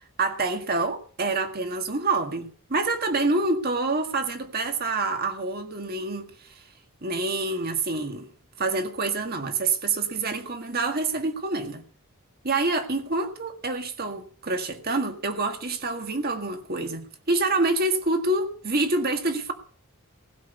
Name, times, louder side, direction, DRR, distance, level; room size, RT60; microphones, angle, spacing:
voice 1, 0.2-6.3 7.0-8.3 8.6-11.8 12.4-19.5, right 3 dB, 45° right, 1.8 m, -27 dB
16.5 x 6.2 x 8.2 m
head